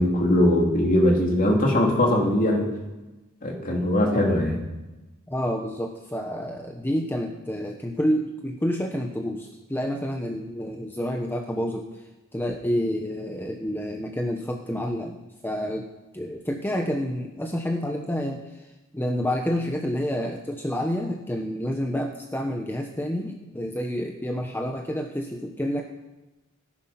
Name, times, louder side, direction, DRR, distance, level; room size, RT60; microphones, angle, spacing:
voice 1, 0.0-2.7 3.4-4.6, left 1 dB, 40° left, 0 dB, 2.9 m, -21 dB
voice 2, 5.3-12.0 12.3-15.2 15.4-15.9 16.1-25.8, equal, 10° left, 3 dB, 0.9 m, -29 dB
14.0 x 11.0 x 5.8 m, 1.1 s
head